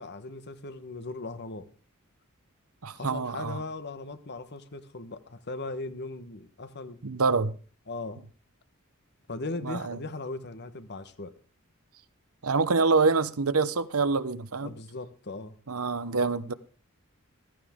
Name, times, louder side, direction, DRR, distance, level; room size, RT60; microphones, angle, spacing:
voice 1, 0.0-1.7 2.9-7.0 7.9-8.2 9.3-11.3 14.6-15.6, left 3 dB, 50° left, 1.2 m, -38 dB
voice 2, 2.8-3.6 7.0-7.6 9.6-10.0 12.4-14.7 15.7-16.5, right 4 dB, 80° right, 0.9 m, -26 dB
15.0 x 14.0 x 3.7 m
head